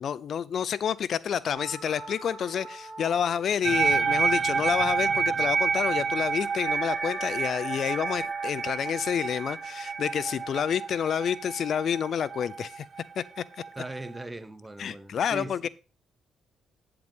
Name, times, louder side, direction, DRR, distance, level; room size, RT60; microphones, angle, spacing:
voice 1, 0.0-12.9 13.2-13.4 14.8-15.7, left 8 dB, 60° left, 0.4 m, -29 dB
sound 1, 1.5-5.5 5.8-5.9 6.5-11.2, left 1 dB, 35° left, 4.9 m, -45 dB
sound 2, 3.6-14.2, right 5 dB, 45° right, 0.5 m, -29 dB
voice 2, 13.7-15.7, right 2 dB, 15° right, 1.2 m, -39 dB
9.3 x 7.8 x 3.6 m
cardioid pair, 90°, 0 cm